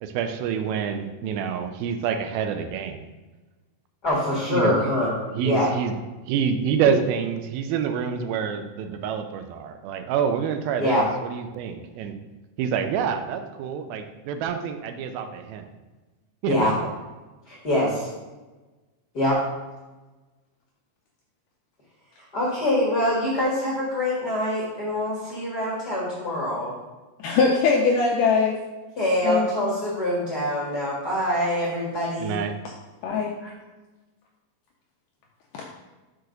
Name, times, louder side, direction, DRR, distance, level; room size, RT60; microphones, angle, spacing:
voice 1, 0.0-3.1 4.5-4.8 5.3-5.9 6.3-12.2 12.6-15.7 16.4-16.9 32.2-32.5, right 7 dB, 80° right, 7 dB, 2.4 m, -27 dB
voice 2, 4.0-5.1 5.4-5.7 6.9-7.0 10.8-11.0 16.5-16.7 17.5-18.1 19.1-19.4 22.3-26.7 29.0-32.4 33.4-33.5, left 1 dB, 45° left, -6 dB, 1.2 m, -24 dB
voice 3, 27.2-28.6 29.2-29.5 33.0-33.3 35.5-35.6, left 4 dB, 80° left, 0 dB, 1.9 m, -21 dB
6.2 x 4.7 x 5.1 m, 1.2 s
omnidirectional pair, 4.3 m